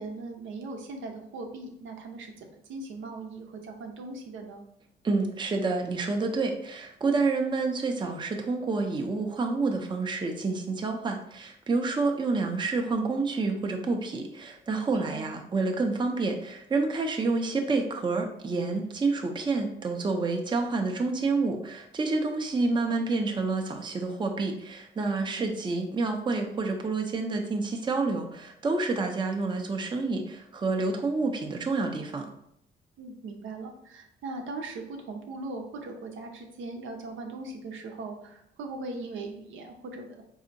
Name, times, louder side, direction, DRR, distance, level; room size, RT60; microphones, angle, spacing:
voice 1, 0.0-4.6 14.9-15.3 33.0-40.3, right 3 dB, 80° right, 3 dB, 0.7 m, -39 dB
voice 2, 5.0-32.3, right 3 dB, 25° right, 3 dB, 0.5 m, -28 dB
4.1 x 2.7 x 2.6 m, 0.74 s
cardioid pair, 90°, 20 cm